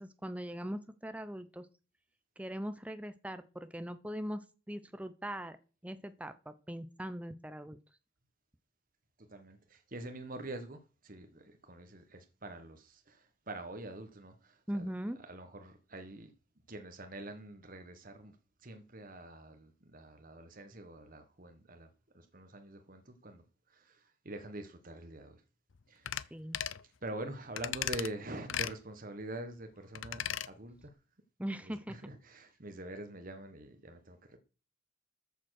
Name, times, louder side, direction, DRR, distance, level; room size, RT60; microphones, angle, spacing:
voice 1, 0.0-1.7 2.4-5.6 5.8-7.8 14.7-15.2 26.3-26.6 31.4-32.0, equal, 5° right, 0.8 m, -40 dB
voice 2, 9.2-14.9 15.2-16.3 16.7-21.9 22.1-25.4 25.9-26.3 26.8-30.9 31.6-34.4, right 1 dB, 45° right, 1.4 m, -45 dB
sound 1, 26.1-26.3 26.5-26.8 27.6-28.1 28.5-28.8 30.0-30.5 30.8-30.9, left 10 dB, 80° left, 0.6 m, -36 dB
14.0 x 7.3 x 6.5 m
head